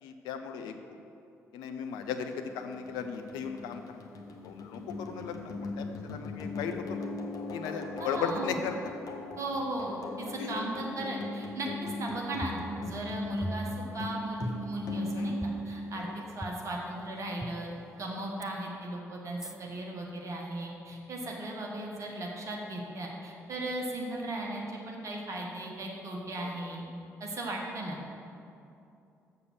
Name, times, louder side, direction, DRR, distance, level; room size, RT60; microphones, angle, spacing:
voice 1, 0.0-0.7 1.5-4.1 4.4-7.0 7.5-8.9 10.4-10.6 15.1-15.4 15.9-16.1 18.1-18.2 26.4-26.5, left 6 dB, 65° left, 6 dB, 0.6 m, -37 dB
sound 1, 2.3-16.5, left 2 dB, 50° left, 0.9 m, -39 dB
voice 2, 8.0-8.6 9.4-16.1 16.3-26.9 27.2-28.0, right 1 dB, 40° right, -1 dB, 1.4 m, -37 dB
sound 2, 12.4-13.1 13.4-14.0 14.4-14.9 15.4-15.5 16.4-16.5 17.4-17.5 18.4-18.5 19.4-19.5, equal, 5° right, 0.5 m, -38 dB
6.8 x 6.7 x 6.2 m, 2.7 s
figure-of-eight pair, 40°, 8 cm